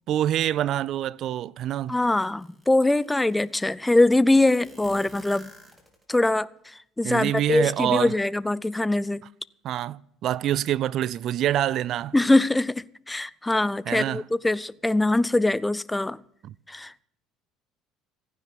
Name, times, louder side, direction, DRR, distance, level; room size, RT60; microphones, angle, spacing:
voice 1, 0.1-2.0 7.0-8.2 9.6-12.1 13.9-14.2 16.4-16.5, right 12 dB, 60° right, 0.5 m, -26 dB
voice 2, 1.9-5.5 6.1-6.5 7.0-9.2 12.1-16.2 16.7-17.0, left 2 dB, 10° left, 0.6 m, -22 dB
sound 1, 1.9-2.0 2.4-3.5 4.4-6.2, right 1 dB, 15° right, 4.0 m, -48 dB
15.0 x 9.9 x 7.1 m
hypercardioid pair, 75°, 0 cm